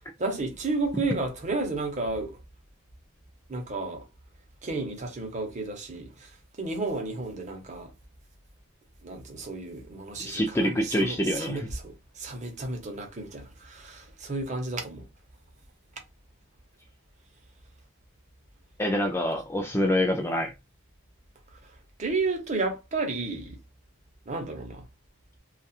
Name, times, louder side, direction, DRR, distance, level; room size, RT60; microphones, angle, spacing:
voice 1, 0.2-2.4 3.5-4.0 4.6-6.3 6.6-7.9 9.0-15.1 22.0-23.6 24.3-24.9, right 3 dB, 35° right, 0.7 m, -32 dB
voice 2, 10.2-11.7 18.8-20.5, left 1 dB, 10° left, 0.3 m, -26 dB
2.7 x 2.3 x 2.3 m
head